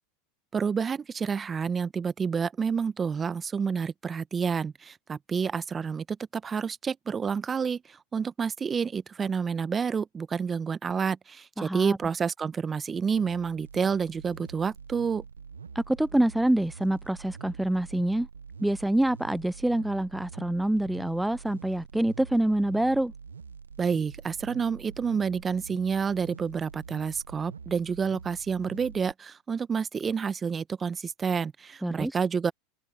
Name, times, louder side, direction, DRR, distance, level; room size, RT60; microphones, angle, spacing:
voice 1, 0.5-15.2 23.8-32.5, right 6 dB, 25° right, 1.0 m, -29 dB
voice 2, 11.6-12.0 15.8-18.3 18.6-23.1 31.8-32.1, right 1 dB, 5° right, 0.4 m, -26 dB
sound 1, 13.1-29.1, right 6 dB, 90° right, 0.6 m, -45 dB
hypercardioid pair, 90°, 0 cm